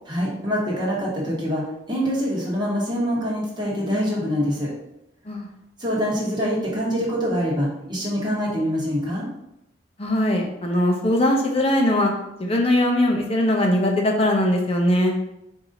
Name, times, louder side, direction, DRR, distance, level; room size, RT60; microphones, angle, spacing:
voice 1, 0.1-4.7 5.8-9.3, equal, 25° right, -5 dB, 1.3 m, -25 dB
voice 2, 10.0-12.1 12.4-15.1, left 1 dB, 35° left, 1 dB, 0.8 m, -20 dB
4.6 x 2.7 x 3.9 m, 0.84 s
head